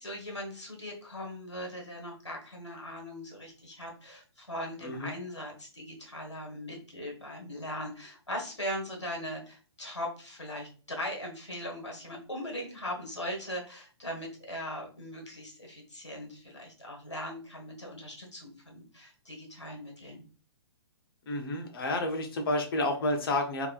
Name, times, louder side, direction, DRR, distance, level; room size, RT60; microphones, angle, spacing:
voice 1, 0.0-20.2, left 1 dB, 85° left, 0 dB, 1.4 m, -39 dB
voice 2, 21.3-23.7, left 1 dB, 55° left, 3 dB, 0.9 m, -30 dB
3.6 x 2.9 x 2.4 m, 0.39 s
figure-of-eight pair, 120°, 14 cm